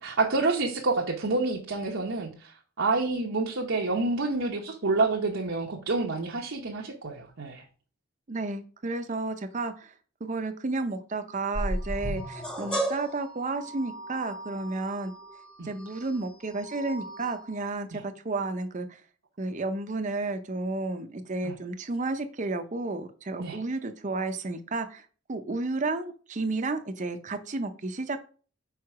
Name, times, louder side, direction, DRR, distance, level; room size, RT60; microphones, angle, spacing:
voice 1, 0.0-7.6 15.6-15.7 17.9-18.0 21.4-21.6 23.4-23.6, right 3 dB, 75° right, -2 dB, 0.9 m, -28 dB
voice 2, 8.3-9.9 10.2-15.1 15.6-19.0 19.4-28.2, right 3 dB, 40° right, 8 dB, 0.6 m, -32 dB
sound 1, 11.5-17.7, right 1 dB, 5° left, 1.0 m, -35 dB
5.0 x 4.7 x 4.8 m, 0.39 s
head